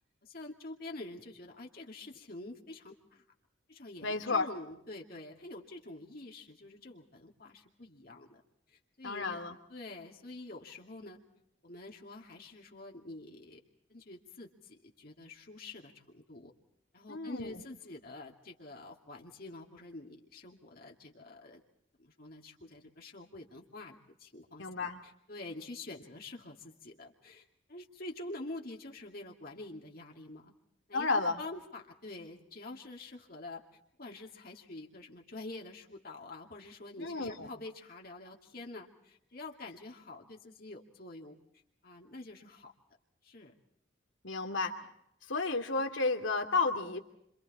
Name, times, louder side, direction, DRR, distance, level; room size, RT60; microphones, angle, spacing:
voice 1, 0.0-3.2 3.7-8.4 8.7-9.4 9.7-11.2 11.6-13.6 13.9-16.5 16.9-21.6 22.0-30.5 30.9-33.6 34.0-41.4 41.8-42.7 43.2-43.5, left 2 dB, 50° left, 0 dB, 2.5 m, -47 dB
voice 2, 4.0-4.5 9.0-9.5 17.1-17.6 24.6-25.0 30.9-31.4 37.0-37.5 44.2-44.8 45.3-47.0, left 3 dB, 80° left, 5 dB, 2.7 m, -32 dB
29.0 x 26.5 x 4.3 m, 0.76 s
head